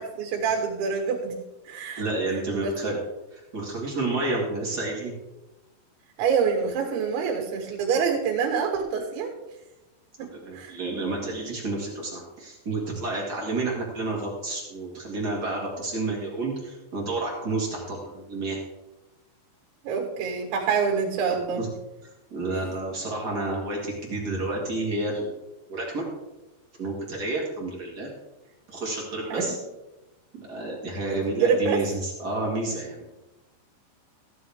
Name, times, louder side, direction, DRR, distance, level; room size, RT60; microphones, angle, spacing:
voice 1, 0.2-1.4 1.7-2.0 2.5-2.9 6.2-9.3 10.2-10.8 19.8-21.7 29.3-29.5 31.1-31.8, right 6 dB, 90° right, 0 dB, 3.9 m, -26 dB
voice 2, 2.0-3.0 3.3-5.1 10.2-18.6 21.5-21.7 22.0-25.3 25.7-26.0 26.8-28.1 28.7-29.6 30.3-33.1, right 2 dB, 50° right, -2 dB, 1.2 m, -30 dB
15.0 x 9.4 x 3.5 m, 1.0 s
omnidirectional pair, 5.1 m